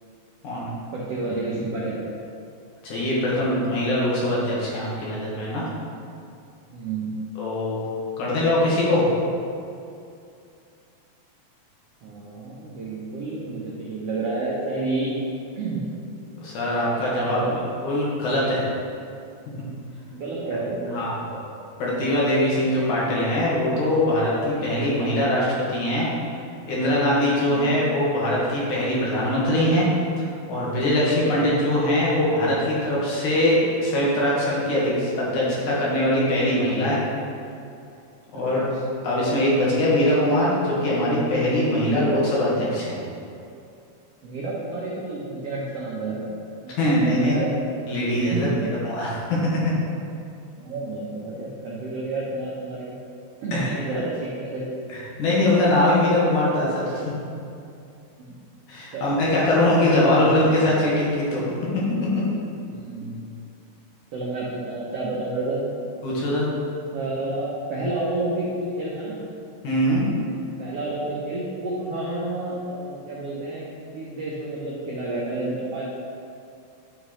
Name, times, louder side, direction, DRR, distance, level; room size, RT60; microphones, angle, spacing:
voice 1, 0.9-2.0 6.7-7.1 12.0-15.2 15.6-15.8 17.2-17.6 20.1-21.4 24.6-24.8 27.4-27.7 31.2-31.5 38.3-38.7 41.8-42.2 44.2-46.4 46.6-47.5 48.3-48.7 50.6-53.0 53.4-54.7 58.2-58.4 58.9-59.1 60.2-60.3 62.7-63.3 64.1-65.9 66.9-69.2 70.6-73.7 73.9-75.8, right 2 dB, 80° right, -6 dB, 1.3 m, -30 dB
voice 2, 2.8-5.7 7.4-7.8 8.2-9.1 16.4-17.4 17.8-18.7 20.9-21.2 21.8-26.1 26.7-29.9 30.5-37.0 38.3-38.7 39.0-43.0 46.8-47.4 47.9-48.5 48.8-49.6 53.5-53.7 55.2-57.1 58.7-61.8 62.1-62.2 66.0-66.5 69.6-70.1, left 1 dB, 60° left, -6 dB, 2.8 m, -22 dB
9.6 x 6.4 x 3.2 m, 2.5 s
omnidirectional pair, 4.2 m